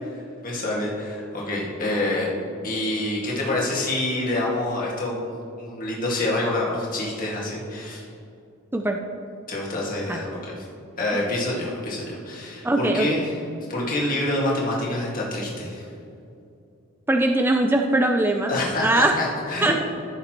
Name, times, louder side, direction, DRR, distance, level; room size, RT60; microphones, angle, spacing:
voice 1, 0.4-2.3 2.6-8.0 9.5-10.7 11.0-13.3 13.7-15.9 18.5-19.8, left 1 dB, 40° left, -4 dB, 2.0 m, -27 dB
voice 2, 12.6-13.1 17.1-18.5 18.8-19.2 19.6-19.8, right 2 dB, 10° right, 3 dB, 0.3 m, -21 dB
14.5 x 6.9 x 3.0 m, 2.6 s
head